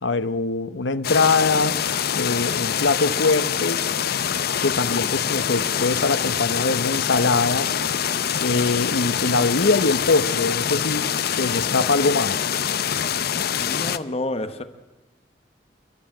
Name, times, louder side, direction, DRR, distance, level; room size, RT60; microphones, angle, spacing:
voice 1, 0.0-1.8 2.1-3.8 4.6-7.7 8.4-12.4, left 3 dB, 90° left, 0.9 m, -22 dB
sound 1, 1.0-14.0, left 8 dB, 60° left, 0.7 m, -25 dB
voice 2, 13.6-14.6, left 2 dB, 35° left, 1.1 m, -29 dB
28.5 x 12.0 x 8.9 m
head